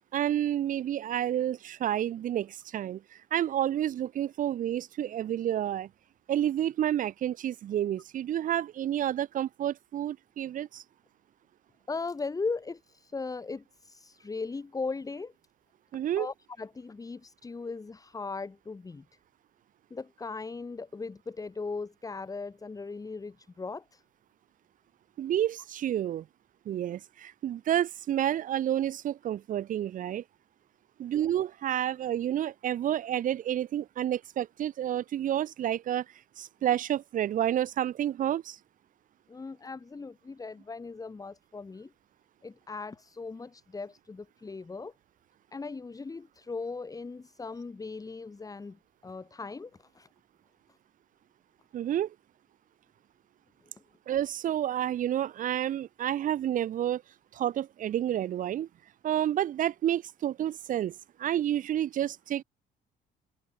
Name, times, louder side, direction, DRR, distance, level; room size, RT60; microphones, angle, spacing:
voice 1, 0.1-3.0 3.3-5.9 6.3-10.8 15.9-16.3 25.2-26.2 26.7-30.2 31.0-36.0 36.4-38.6 51.7-52.1 54.1-57.0 57.3-58.7 59.0-60.9 61.2-62.4, right 11 dB, 50° right, 0.8 m, -29 dB
voice 2, 11.9-15.3 16.2-19.0 19.9-24.0 39.3-41.9 42.4-44.9 45.5-50.1, left 4 dB, 20° left, 2.5 m, -38 dB
open air
cardioid pair, 110°, 17 cm